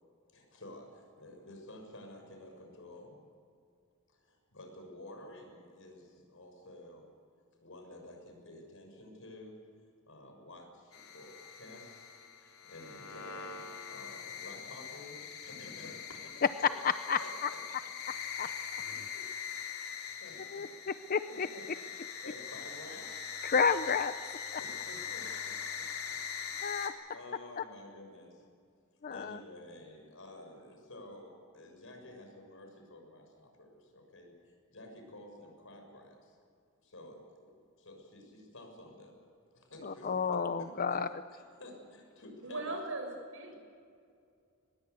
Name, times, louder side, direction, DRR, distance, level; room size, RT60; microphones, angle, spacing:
voice 1, 0.3-3.2 4.1-7.1 7.6-9.6 10.1-12.1 12.4-16.7 17.2-17.9 18.8-19.3 19.8-21.7 22.2-23.3 24.6-26.8 27.1-28.5 29.0-36.4 36.8-39.2 39.5-40.2 40.9-41.0 41.3-42.8, left 1 dB, 65° left, 3 dB, 6.5 m, -52 dB
sound 1, 10.9-26.9, left 7 dB, 85° left, 3.4 m, -42 dB
voice 2, 17.1-17.5 18.4-18.5 20.5-21.5 23.4-24.1 26.6-26.9 27.6-27.7 29.0-29.4 39.8-41.1, left 5 dB, 40° left, 11 dB, 0.6 m, -31 dB
voice 3, 42.4-43.6, right 2 dB, 65° right, 3 dB, 6.6 m, -39 dB
23.5 x 21.0 x 8.2 m, 2.3 s
head